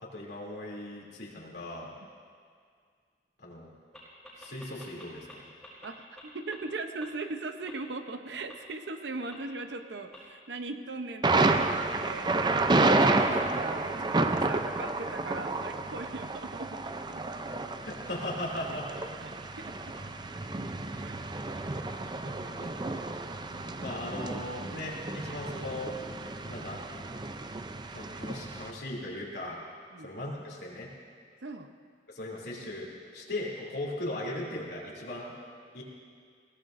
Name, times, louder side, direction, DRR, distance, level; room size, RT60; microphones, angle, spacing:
voice 1, 0.0-1.9 3.4-3.7 4.4-5.4 17.8-18.9 22.2-22.9 23.8-26.0 26.5-26.8 27.6-29.6 30.0-30.9 32.1-35.3 35.7-35.8, left 1 dB, 75° left, -4 dB, 2.9 m, -38 dB
sound 1, 3.9-4.0 4.2-5.3 5.6-5.9 6.2-6.3 6.5-6.6 7.0-7.1 7.7-7.8 8.5-8.6 9.3-9.4 10.1-10.2, left 1 dB, ahead, 4.2 m, -48 dB
voice 2, 5.8-17.3 18.6-19.9 20.9-21.2 22.2-23.1 29.9-30.1 31.4-31.7, right 3 dB, 85° right, 7 dB, 0.8 m, -40 dB
Thunder, 11.2-28.7, right 2 dB, 25° right, 0.5 m, -30 dB
21.0 x 16.5 x 2.6 m, 2.1 s
head